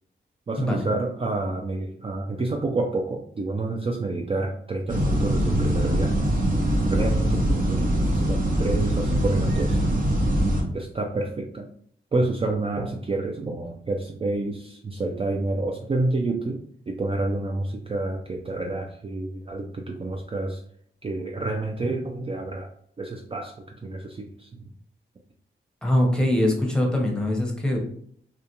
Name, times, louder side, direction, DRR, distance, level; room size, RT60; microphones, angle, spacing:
voice 1, 0.5-6.2 6.9-9.8 10.7-11.7 12.1-16.6 16.9-20.6 21.0-22.7 23.0-24.6, right 2 dB, 30° right, 1 dB, 0.4 m, -29 dB
sound 1, 4.9-10.6, right 1 dB, 45° right, 0.8 m, -23 dB
voice 2, 25.8-27.8, left 1 dB, 5° left, 0 dB, 0.9 m, -22 dB
2.4 x 2.2 x 2.8 m, 0.63 s
cardioid pair, 55°, 20 cm